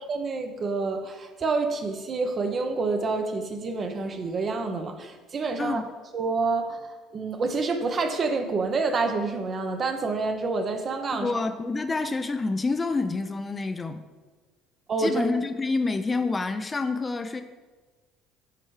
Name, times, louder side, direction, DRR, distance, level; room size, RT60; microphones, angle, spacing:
voice 1, 0.1-5.8 6.1-11.4 14.9-15.3, right 3 dB, 40° right, 6 dB, 0.9 m, -28 dB
voice 2, 11.1-14.0 15.0-17.4, left 3 dB, 25° left, 8 dB, 0.5 m, -28 dB
9.8 x 4.4 x 3.2 m, 1.3 s
hypercardioid pair, 70°, 0 cm